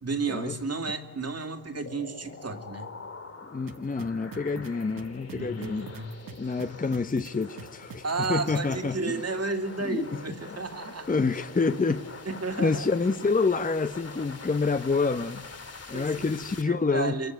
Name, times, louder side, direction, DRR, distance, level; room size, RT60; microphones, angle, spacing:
voice 1, 0.0-2.9 5.3-6.1 8.0-11.1 12.3-12.9 15.9-16.3 16.6-17.3, right 4 dB, 40° right, 2.6 m, -32 dB
sound 1, 1.9-16.6, left 4 dB, 40° left, 3.2 m, -45 dB
voice 2, 3.5-5.9 6.4-8.0 8.3-9.2 9.8-10.2 11.1-12.0 12.6-15.5 15.9-17.1, left 4 dB, 20° left, 0.9 m, -27 dB
sound 2, 3.7-8.7, right 4 dB, 65° right, 1.7 m, -43 dB
26.5 x 22.5 x 9.3 m
cardioid pair, 70°, 37 cm